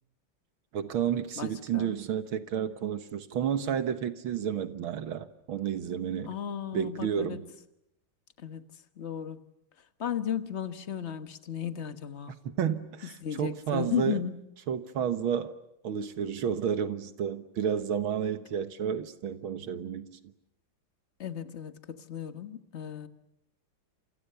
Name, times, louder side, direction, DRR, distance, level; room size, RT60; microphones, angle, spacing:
voice 1, 0.7-6.3 6.7-7.4 12.5-14.2 14.7-15.5 15.8-20.1, right 8 dB, 80° right, 2.1 m, -31 dB
voice 2, 1.4-1.9 6.3-7.5 8.4-9.4 10.0-12.4 13.2-14.4 21.2-23.1, left 9 dB, 35° left, 1.4 m, -35 dB
29.5 x 28.0 x 6.9 m
omnidirectional pair, 2.2 m